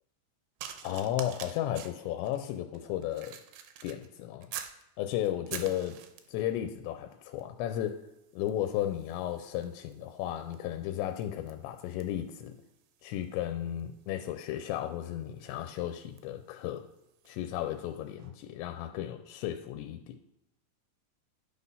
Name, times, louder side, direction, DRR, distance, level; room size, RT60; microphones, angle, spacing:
sound 1, 0.6-4.8 5.2-6.5 7.3-7.5 7.8-17.5 18.2-18.3, right 9 dB, 80° right, 2.3 m, -48 dB
voice 1, 0.8-3.4 3.8-4.5 5.0-5.9 6.3-8.0 8.3-12.5 13.0-16.8 17.3-20.1, left 12 dB, 85° left, 7 dB, 2.8 m, -34 dB
11.5 x 4.2 x 5.4 m, 0.92 s
omnidirectional pair, 5.1 m